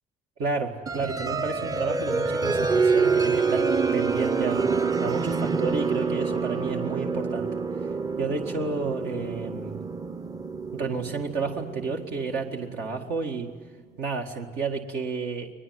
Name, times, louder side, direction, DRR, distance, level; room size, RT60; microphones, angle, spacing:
voice 1, 0.4-4.6 5.0-7.5 8.2-9.8 10.7-13.5 14.0-15.5, right 4 dB, 80° right, 2 dB, 2.0 m, -31 dB
sound 1, 0.9-13.4, right 4 dB, 20° right, 0.6 m, -27 dB
22.0 x 21.0 x 9.3 m, 1.5 s
cardioid pair, 110°, 17 cm